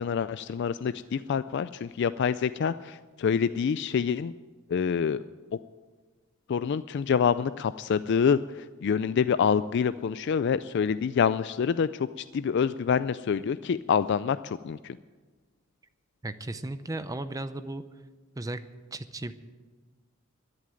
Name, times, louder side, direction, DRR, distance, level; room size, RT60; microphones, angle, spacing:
voice 1, 0.0-4.3 4.7-5.2 6.5-15.0, left 6 dB, 60° left, 14 dB, 0.3 m, -26 dB
voice 2, 16.2-17.8 18.4-18.6 18.9-19.3, right 2 dB, 15° right, 12 dB, 0.6 m, -35 dB
12.5 x 10.5 x 9.0 m, 1.4 s
head